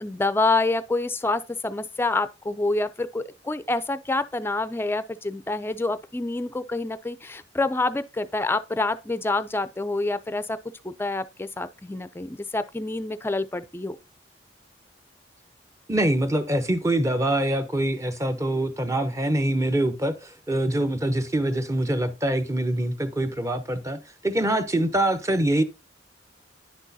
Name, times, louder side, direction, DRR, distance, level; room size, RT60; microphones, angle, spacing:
voice 1, 0.0-10.6 10.8-14.0, left 2 dB, 10° left, 0.4 m, -27 dB
voice 2, 15.9-25.6, right 1 dB, 15° right, 0.7 m, -24 dB
9.9 x 6.1 x 2.7 m
head